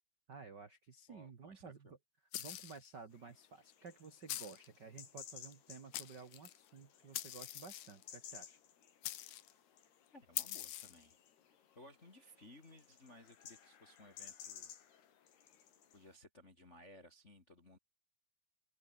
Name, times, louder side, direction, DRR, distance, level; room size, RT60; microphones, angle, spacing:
voice 1, 0.3-1.9 2.4-8.6, right 5 dB, 75° right, 0.9 m, -53 dB
voice 2, 1.1-1.9 10.1-11.2 11.7-15.1 15.9-17.8, left 1 dB, 35° left, 1.1 m, -60 dB
sound 1, 2.3-2.9 4.3-4.7 5.5-5.6 5.9-6.6 7.1-8.0 9.0-9.5 10.4-11.0, left 13 dB, 90° left, 1.6 m, -43 dB
sound 2, 3.1-16.1, left 9 dB, 70° left, 4.9 m, -58 dB
open air
omnidirectional pair, 5.0 m